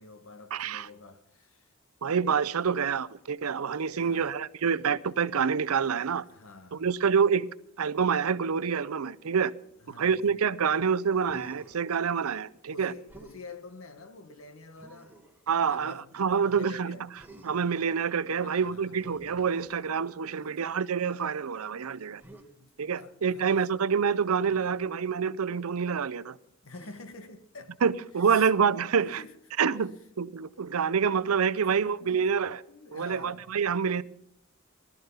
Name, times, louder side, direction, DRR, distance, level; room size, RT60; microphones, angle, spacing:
voice 1, 0.0-1.7 3.9-4.4 6.2-7.0 9.8-10.3 11.7-11.8 12.7-15.2 15.6-17.0 18.3-19.1 20.3-20.8 22.6-23.7 24.6-24.9 26.6-27.8 28.2-28.5 29.0-29.4 31.5-32.3 32.7-33.5 33.9-34.0, left 3 dB, 70° left, 1.4 m, -48 dB
voice 2, 0.5-0.9 2.0-6.2 6.7-7.5 7.8-9.5 10.0-12.9 15.5-16.9 17.4-22.2 22.8-26.4 27.8-29.2 29.6-32.6 32.9-34.0, right 6 dB, 80° right, 0.6 m, -27 dB
Human voice, 11.2-11.9 13.1-13.4 14.8-15.4 17.2-17.8 18.9-20.1 22.2-22.5 24.4-24.7 26.7-27.2 28.8-29.3, right 2 dB, 10° right, 1.9 m, -51 dB
18.5 x 13.0 x 5.7 m
head